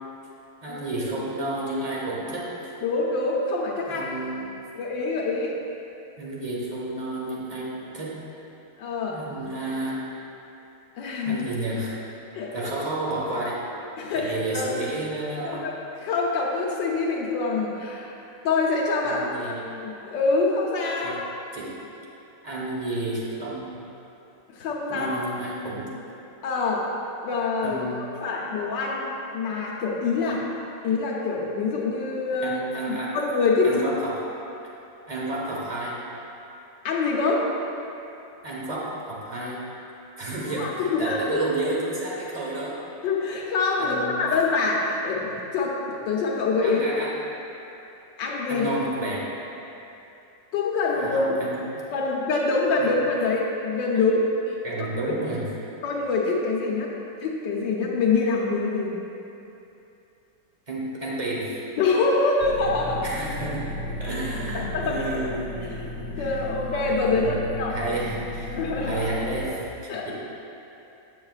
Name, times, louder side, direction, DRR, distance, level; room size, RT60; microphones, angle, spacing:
voice 1, 0.6-2.7 3.9-4.5 6.2-8.2 9.1-9.9 11.2-12.0 12.5-13.5 14.1-15.6 19.0-19.6 21.0-21.2 21.5-21.7 22.4-23.8 24.9-25.9 27.6-28.2 32.4-33.2 33.6-34.2 35.1-36.0 38.4-39.6 40.2-42.8 43.8-44.2 46.6-47.1 48.5-49.2 50.9-51.8 52.8-53.0 54.6-55.5 60.7-61.6 63.0-63.7 64.0-65.5 66.2-66.3 67.1-68.5 68.8-70.1, right 2 dB, 25° right, -5 dB, 0.9 m, -31 dB
voice 2, 2.8-4.1 4.7-5.5 8.8-9.2 11.0-11.4 12.3-12.7 14.0-14.7 15.4-15.7 16.0-18.1 18.4-19.3 19.8-21.2 24.5-25.1 26.4-26.9 27.2-30.4 30.8-32.6 33.1-33.8 36.8-37.5 40.5-41.2 43.0-46.9 48.2-48.7 50.5-51.4 51.9-54.6 55.0-55.1 55.8-56.9 57.2-59.0 61.8-63.0 64.5-65.0 65.7-65.9 66.2-67.8 68.5-69.1 69.9-70.1, left 3 dB, 75° left, -3 dB, 1.5 m, -25 dB
sound 1, 62.4-69.5, left 1 dB, 60° left, 1.2 m, -34 dB
8.6 x 7.2 x 2.4 m, 2.8 s
omnidirectional pair, 2.0 m